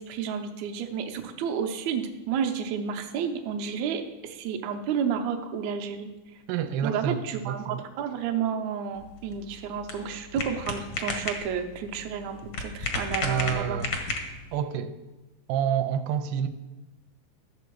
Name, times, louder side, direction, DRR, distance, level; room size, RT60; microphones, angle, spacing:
voice 1, 0.0-6.1 6.8-13.8, right 7 dB, 70° right, 1.8 m, -31 dB
voice 2, 6.5-7.8 13.2-14.0 14.5-14.9 15.5-16.5, right 8 dB, 90° right, 2.4 m, -28 dB
sound 1, 9.0-14.6, left 3 dB, 70° left, 1.2 m, -34 dB
13.0 x 6.7 x 4.6 m
omnidirectional pair, 4.2 m